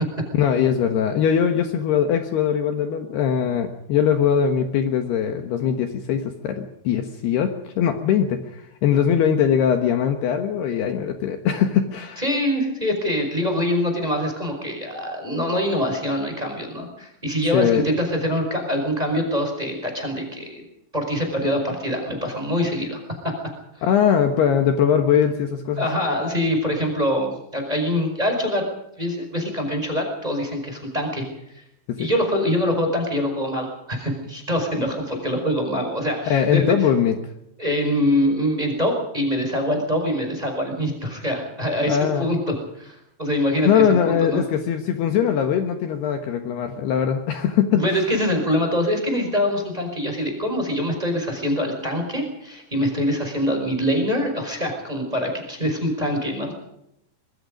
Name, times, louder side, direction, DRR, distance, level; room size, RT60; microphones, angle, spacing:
voice 1, 0.4-12.2 17.5-17.8 23.8-25.9 31.9-32.1 36.3-37.2 41.9-42.3 43.7-48.0, left 8 dB, 65° left, 5 dB, 3.1 m, -21 dB
voice 2, 12.2-20.6 20.9-23.0 23.7-23.8 25.8-28.6 29.0-31.2 31.5-31.6 32.0-36.7 37.6-44.4 47.7-56.5, equal, 10° right, 3 dB, 4.8 m, -24 dB
25.0 x 22.0 x 5.3 m, 0.81 s
omnidirectional pair, 5.4 m